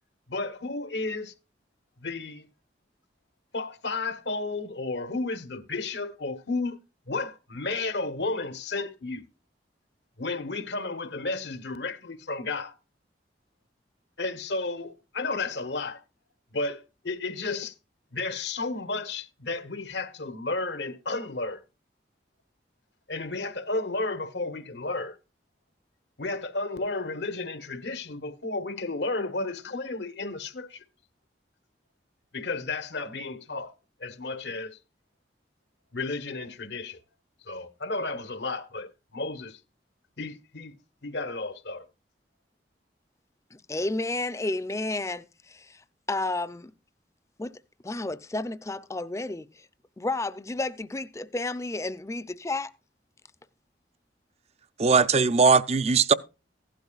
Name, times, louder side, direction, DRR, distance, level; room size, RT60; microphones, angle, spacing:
voice 1, 0.3-1.3 2.0-2.5 3.5-6.8 7.1-9.2 10.2-12.7 14.2-16.0 16.5-17.7 18.1-21.6 23.1-25.2 26.2-30.8 32.3-33.7 34.0-34.8 35.9-37.0 37.4-39.6 40.2-40.7 41.0-41.8, left 3 dB, 75° left, 1.2 m, -32 dB
voice 2, 43.5-46.7 47.4-47.5 47.8-49.7 50.0-52.7, left 2 dB, 15° left, 0.5 m, -32 dB
voice 3, 54.8-56.1, right 5 dB, 35° right, 0.5 m, -20 dB
15.5 x 12.0 x 2.4 m
head